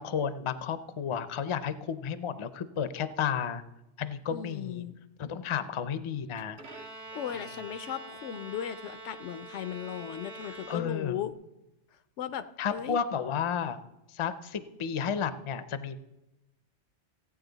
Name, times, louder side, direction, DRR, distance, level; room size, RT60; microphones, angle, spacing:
voice 1, 0.0-3.6 4.0-4.9 5.2-6.6 10.4-11.2 12.6-13.8 14.1-16.0, left 7 dB, 40° left, 12 dB, 0.4 m, -32 dB
voice 2, 4.3-4.9 7.1-11.3 12.2-12.5 12.7-13.0, left 9 dB, 85° left, 12 dB, 1.0 m, -37 dB
Bowed string instrument, 6.6-11.3, right 2 dB, 75° right, 1.5 m, -45 dB
16.0 x 8.9 x 3.9 m, 0.97 s
omnidirectional pair, 1.2 m